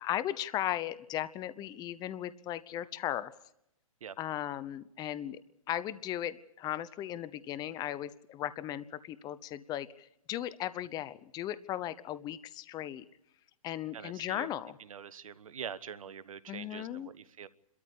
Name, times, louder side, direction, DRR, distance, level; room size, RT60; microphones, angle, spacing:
voice 1, 0.0-3.3 4.2-5.4 5.7-13.0 13.6-14.8 16.5-17.1, left 12 dB, 20° left, 16 dB, 0.7 m, -37 dB
voice 2, 13.9-14.5 14.8-17.5, right 8 dB, 75° right, 17 dB, 1.1 m, -44 dB
29.0 x 13.5 x 8.4 m, 0.81 s
hypercardioid pair, 125°, 18 cm